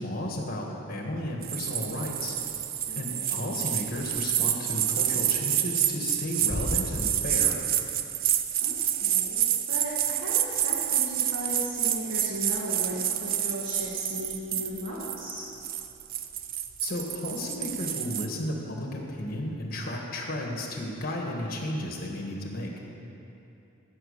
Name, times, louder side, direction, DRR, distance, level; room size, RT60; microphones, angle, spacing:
voice 1, 0.0-2.3 2.9-7.6 16.8-22.7, left 1 dB, 45° left, 0 dB, 1.6 m, -33 dB
sound 1, 1.4-18.3, right 11 dB, 45° right, 0.4 m, -28 dB
voice 2, 2.9-3.5 8.6-15.5, equal, 65° right, -6 dB, 1.7 m, -37 dB
sound 2, 6.5-8.1, left 1 dB, 20° right, 2.8 m, -35 dB
15.0 x 6.0 x 6.7 m, 2.9 s
head